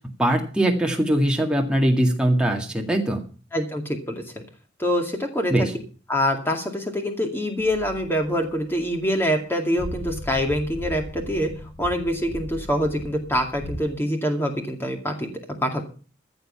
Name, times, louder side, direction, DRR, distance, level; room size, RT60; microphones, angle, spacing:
voice 1, 0.2-3.2 5.5-5.7, right 1 dB, 5° right, 1 dB, 1.9 m, -21 dB
voice 2, 3.5-4.4 4.8-5.7 6.1-11.5 11.8-15.3 15.6-15.8, equal, 10° left, 3 dB, 2.2 m, -25 dB
sound 1, 7.6-9.3 9.7-13.8, equal, 55° left, 4.0 m, -38 dB
15.0 x 6.8 x 7.0 m, 0.39 s
head